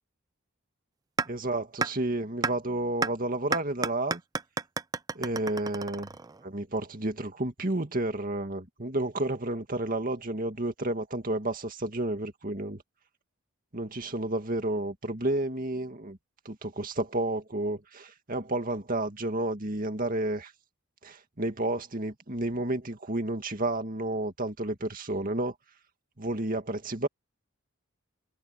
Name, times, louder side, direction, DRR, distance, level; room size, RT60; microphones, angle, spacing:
sound 1, 1.2-1.3 1.8-1.9 2.4-2.5 3.0-3.1 3.5-6.4, right 4 dB, 15° right, 0.4 m, -30 dB
voice 1, 1.3-4.2 5.1-6.1 6.4-12.8 13.7-16.2 16.5-20.5 21.0-25.5 26.2-27.1, right 1 dB, 40° right, 2.2 m, -31 dB
head